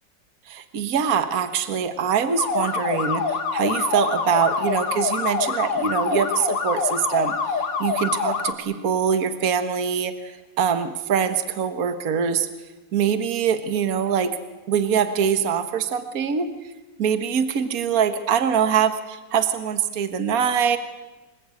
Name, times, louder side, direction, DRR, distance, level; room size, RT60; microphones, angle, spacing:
voice 1, 0.5-12.5 12.9-14.4 14.7-16.5 17.0-20.8, right 7 dB, 50° right, 9 dB, 1.7 m, -23 dB
sound 1, 2.4-8.5, left 5 dB, 75° left, 2.3 m, -25 dB
27.5 x 20.0 x 8.5 m, 1.1 s
omnidirectional pair, 2.0 m